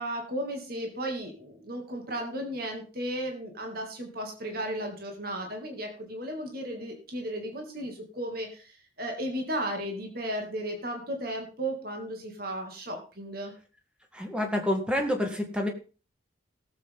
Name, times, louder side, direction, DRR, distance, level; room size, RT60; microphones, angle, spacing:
voice 1, 0.0-13.5, right 1 dB, 50° right, 2 dB, 2.5 m, -35 dB
voice 2, 14.1-15.7, left 1 dB, 5° right, 3 dB, 1.9 m, -28 dB
18.0 x 7.8 x 3.8 m, 0.34 s
head